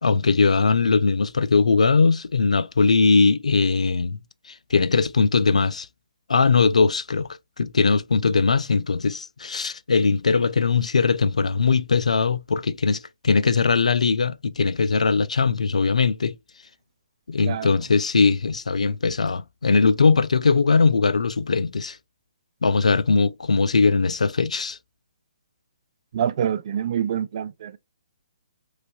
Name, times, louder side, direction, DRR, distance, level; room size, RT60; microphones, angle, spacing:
voice 1, 0.0-4.2 4.5-5.9 6.3-7.3 7.6-16.4 17.3-22.0 22.6-24.8, left 4 dB, 85° left, 0.4 m, -20 dB
voice 2, 17.4-17.8 26.1-27.8, right 9 dB, 50° right, 0.4 m, -26 dB
3.2 x 2.6 x 2.3 m
hypercardioid pair, 145°, 4 cm